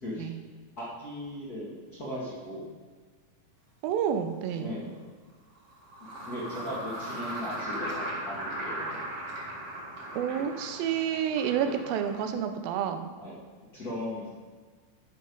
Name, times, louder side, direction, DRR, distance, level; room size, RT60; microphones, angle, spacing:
voice 1, 0.8-2.8 4.6-5.0 6.3-9.1 11.6-11.8 13.2-13.3 13.7-14.3, left 1 dB, 35° left, -7 dB, 1.7 m, -38 dB
voice 2, 3.8-4.7 10.1-13.1, right 8 dB, 80° right, 8 dB, 2.3 m, -29 dB
sound 1, 3.9-4.0 5.6-12.3, right 1 dB, 50° right, 2.5 m, -38 dB
11.5 x 5.7 x 5.4 m, 1.4 s
omnidirectional pair, 4.4 m